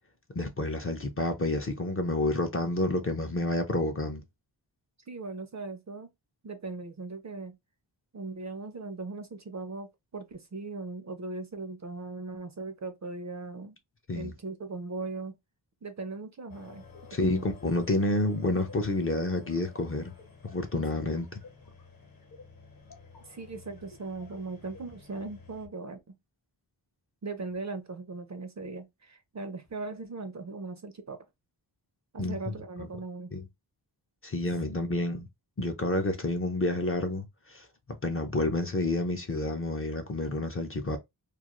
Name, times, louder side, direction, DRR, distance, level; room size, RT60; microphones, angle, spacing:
voice 1, 0.3-4.2 14.1-14.3 17.1-20.1 20.4-21.4 32.2-32.5 33.3-33.4 34.2-35.3 35.6-37.7 38.0-41.0, left 2 dB, 30° left, 0.5 m, -29 dB
voice 2, 5.1-6.1 6.4-7.6 8.1-13.8 14.1-15.4 15.8-16.8 17.2-17.4 23.2-26.1 27.2-31.2 32.1-33.3, right 3 dB, 40° right, 0.5 m, -39 dB
sound 1, 16.5-25.7, left 4 dB, 50° left, 0.9 m, -52 dB
2.4 x 2.3 x 2.9 m
wide cardioid pair, 110°, 46 cm